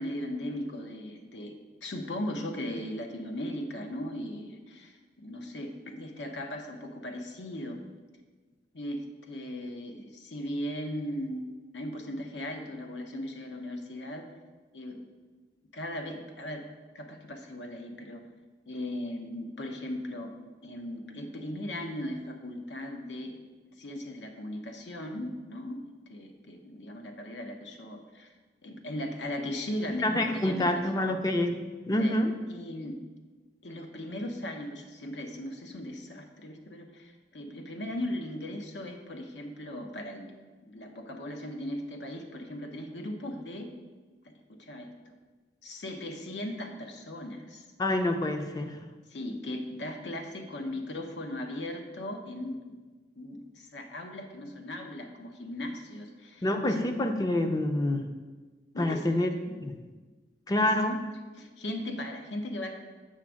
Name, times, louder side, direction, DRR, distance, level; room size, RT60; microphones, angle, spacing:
voice 1, 0.0-1.5 1.8-7.8 8.7-14.3 14.7-15.1 15.7-16.7 16.9-18.2 18.7-20.3 20.6-23.4 23.8-28.3 28.6-31.1 32.0-32.2 32.5-33.0 33.6-40.3 40.6-43.7 44.2-45.1 45.6-47.7 49.1-52.7 53.1-56.5 58.7-59.2 60.6-60.7 61.4-62.7, left 1 dB, 80° left, 4 dB, 0.8 m, -38 dB
voice 2, 30.0-31.6 31.9-32.3 47.8-48.8 56.4-58.1 58.8-59.3 59.6-59.8 60.5-61.0, left 1 dB, 20° left, 6 dB, 0.5 m, -27 dB
7.5 x 3.4 x 6.2 m, 1.3 s
head